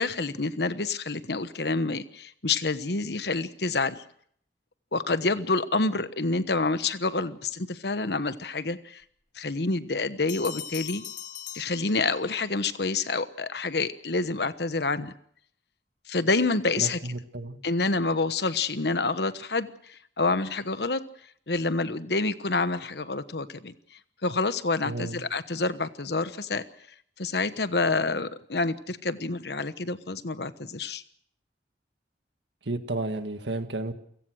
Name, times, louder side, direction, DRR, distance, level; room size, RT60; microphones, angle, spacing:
voice 1, 0.0-4.0 4.9-9.0 9.4-11.0 11.5-15.1 16.1-17.0 17.6-21.0 21.5-23.7 24.2-26.6 27.2-31.0, left 3 dB, 65° left, 12 dB, 1.2 m, -28 dB
Bell, 10.3-12.5, left 10 dB, 50° left, 1.9 m, -40 dB
voice 2, 16.8-17.6 24.8-25.2 32.7-33.9, right 2 dB, 80° right, 8 dB, 1.9 m, -32 dB
29.5 x 17.0 x 6.4 m, 0.64 s
head